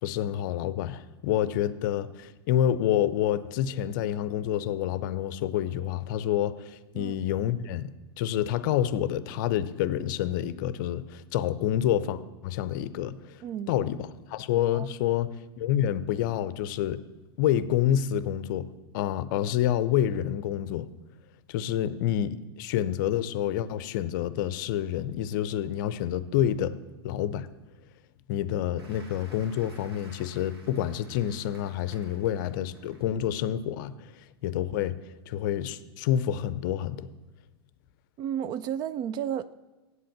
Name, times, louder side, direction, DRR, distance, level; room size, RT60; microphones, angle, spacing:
voice 1, 0.0-17.0 17.4-20.9 21.5-26.8 27.0-27.5 28.3-37.1, left 11 dB, 50° left, 0.5 m, -28 dB
voice 2, 13.4-13.7 14.7-14.9 38.2-39.5, right 9 dB, 30° right, 0.3 m, -32 dB
Applause, 28.8-33.3 33.7-33.9, right 2 dB, 70° right, 2.2 m, -54 dB
8.1 x 7.6 x 7.2 m
figure-of-eight pair, 95°, 13 cm